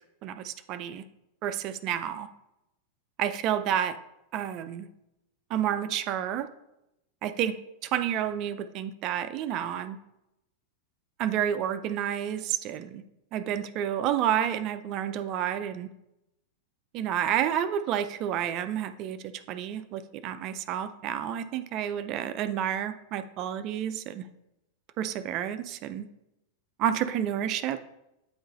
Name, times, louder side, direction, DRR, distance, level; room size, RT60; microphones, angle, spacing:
voice 1, 0.2-1.0 1.4-2.3 3.2-4.0 4.3-4.9 5.5-6.5 7.2-7.6 7.9-10.0 11.2-13.0 13.3-15.9 16.9-19.2 19.5-24.2 25.0-26.0 26.8-27.8, right 10 dB, 40° right, 11 dB, 0.4 m, -30 dB
8.6 x 3.8 x 4.0 m, 0.88 s
figure-of-eight pair, 90°, 0 cm